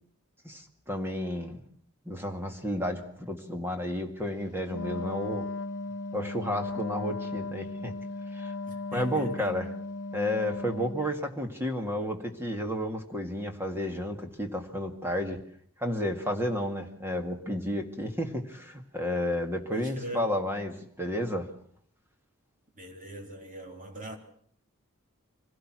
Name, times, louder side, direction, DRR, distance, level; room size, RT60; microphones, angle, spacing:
voice 1, 0.4-1.6 2.1-5.5 6.1-7.9 8.3-8.5 8.9-9.7 10.1-15.4 15.8-21.5, equal, 10° right, 2.0 m, -32 dB
Wind instrument woodwind instrument, 4.6-11.1, left 3 dB, 85° left, 0.8 m, -36 dB
voice 2, 8.6-9.5 19.7-20.4 22.7-24.2, right 1 dB, 35° right, 3.5 m, -41 dB
24.5 x 17.0 x 6.2 m
head